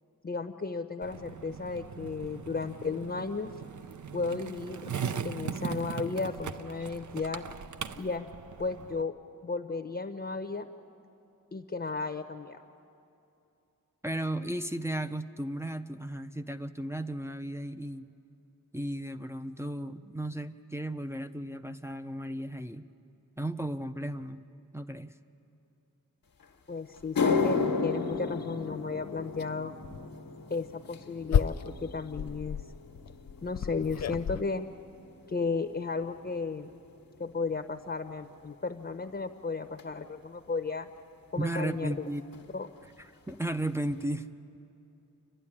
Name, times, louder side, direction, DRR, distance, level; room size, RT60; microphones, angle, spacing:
voice 1, 0.2-3.5 4.1-4.9 5.2-7.4 8.0-8.3 8.6-9.1 9.4-10.7 11.5-12.6 26.7-29.7 30.5-32.6 33.4-34.7 35.3-36.7 37.2-40.9 41.3-42.0 42.5-42.7, left 4 dB, 30° left, 7 dB, 0.8 m, -34 dB
Skateboard, 1.0-9.0, right 7 dB, 60° right, 0.6 m, -39 dB
voice 2, 14.0-18.1 18.7-22.9 23.4-24.4 24.7-25.1 41.4-42.2 43.0-44.3, right 1 dB, 10° right, 5 dB, 0.5 m, -35 dB
sound 1, 26.4-26.5 27.0-35.5 35.8-36.2 36.9-37.0 39.8-39.9 41.5-41.6 41.8-42.1 42.3-42.9 43.3-43.4 43.9-44.0, left 5 dB, 85° left, 1.3 m, -34 dB
sound 2, 27.0-27.1 27.6-27.7 28.1-28.5 29.3-29.5 29.8-30.0 30.7-34.4, left 8 dB, 50° left, 0.4 m, -32 dB
28.5 x 12.0 x 9.8 m, 2.7 s
wide cardioid pair, 85°, 33 cm